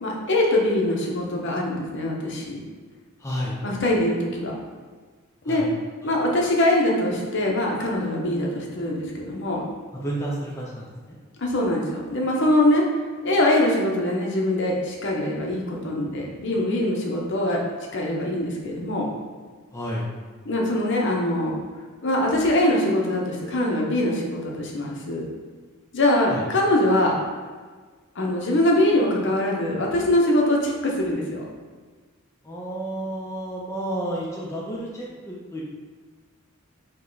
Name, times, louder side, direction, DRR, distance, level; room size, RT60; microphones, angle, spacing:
voice 1, 0.0-2.6 3.6-4.5 5.4-5.7 6.0-9.6 11.4-12.8 13.2-17.6 17.9-19.1 20.5-21.6 22.0-25.2 25.9-27.2 28.2-31.5, left 1 dB, 55° left, -1 dB, 0.8 m, -23 dB
voice 2, 3.2-3.6 5.4-5.6 10.0-11.2 19.7-20.1 26.3-26.4 32.4-35.6, right 1 dB, 15° left, -5 dB, 0.5 m, -31 dB
5.3 x 2.2 x 3.9 m, 1.5 s
head